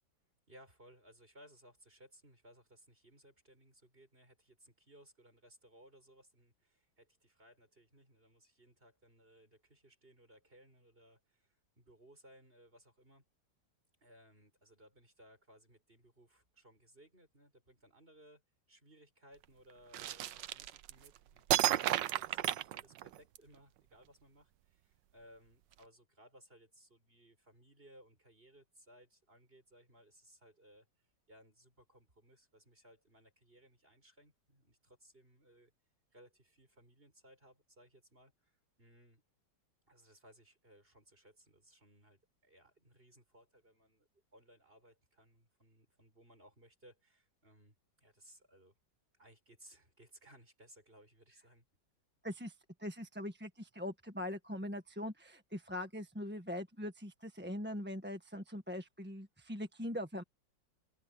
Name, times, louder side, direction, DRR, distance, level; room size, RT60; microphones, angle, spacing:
voice 1, 0.5-13.2 14.0-18.4 18.7-30.9 31.3-35.7 36.1-39.2 39.9-48.7 49.1-51.6, equal, 30° right, 8.1 m, -63 dB
sound 1, 19.9-21.1 21.5-23.4, right 13 dB, 80° right, 1.4 m, -32 dB
voice 2, 52.2-60.2, left 1 dB, 5° right, 1.4 m, -42 dB
open air
omnidirectional pair, 2.0 m